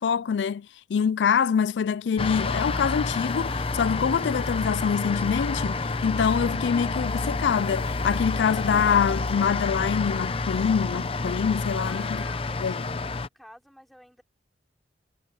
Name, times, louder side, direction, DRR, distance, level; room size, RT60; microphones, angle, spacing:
voice 1, 0.0-12.2 12.6-12.8, left 7 dB, 80° left, 0.4 m, -25 dB
sound 1, 2.2-13.3, left 3 dB, 30° left, 0.6 m, -29 dB
voice 2, 11.8-14.2, equal, ahead, 3.4 m, -50 dB
head